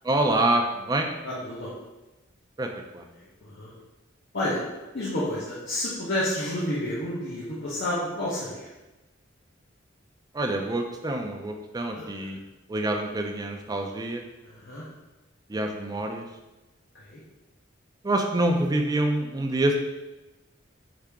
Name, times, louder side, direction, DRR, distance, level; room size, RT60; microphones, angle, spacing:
voice 1, 0.0-1.1 2.6-3.0 10.3-12.4 12.7-14.2 15.5-16.3 18.0-19.8, right 1 dB, 20° right, 3 dB, 0.4 m, -26 dB
voice 2, 1.2-1.7 3.1-3.7 4.3-4.6 4.9-8.7 11.9-12.1 14.4-14.8 16.9-17.2, left 1 dB, 60° left, -9 dB, 0.9 m, -30 dB
4.8 x 2.8 x 3.5 m, 1.1 s
head